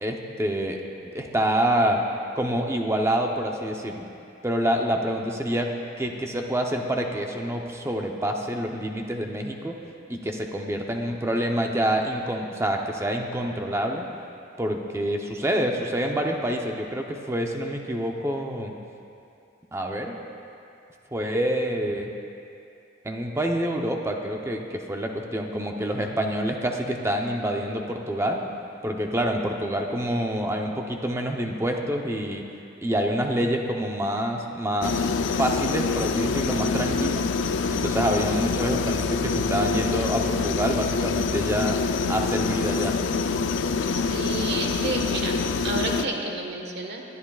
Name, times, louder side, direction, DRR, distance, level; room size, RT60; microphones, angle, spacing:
voice 1, 0.0-2.0 2.3-4.1 4.4-5.7 6.0-9.7 10.1-14.0 14.6-18.7 19.7-20.2 21.1-22.1 23.0-28.4 28.8-32.4 32.8-35.1 35.4-37.2 37.7-41.8 42.1-42.9, right 1 dB, 15° right, 2 dB, 0.8 m, -27 dB
sound 1, 34.8-46.0, left 4 dB, 75° left, 0.5 m, -26 dB
voice 2, 43.9-47.0, right 2 dB, 60° right, 1 dB, 1.4 m, -30 dB
22.0 x 11.0 x 2.4 m, 2.6 s
head